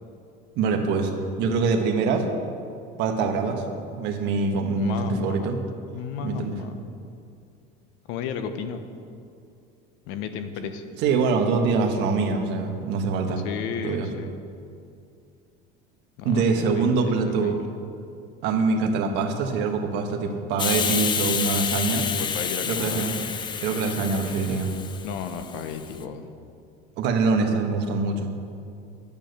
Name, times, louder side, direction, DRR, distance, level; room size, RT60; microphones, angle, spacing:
voice 1, 0.6-1.1 1.4-2.3 3.0-3.6 3.9-5.6 6.2-6.6 11.0-13.4 13.8-14.1 16.2-17.6 18.4-22.1 22.7-23.1 23.6-24.7 27.0-28.3, right 4 dB, 55° right, 3 dB, 1.4 m, -24 dB
voice 2, 4.7-5.5 5.9-6.9 8.1-8.8 10.1-10.9 13.4-14.3 16.2-17.6 21.9-23.3 25.0-26.3, left 7 dB, 70° left, 9 dB, 1.1 m, -34 dB
Hiss, 20.6-26.0, left 7 dB, 20° left, 0.5 m, -29 dB
11.0 x 8.9 x 6.7 m, 2.4 s
cardioid pair, 155°, 21 cm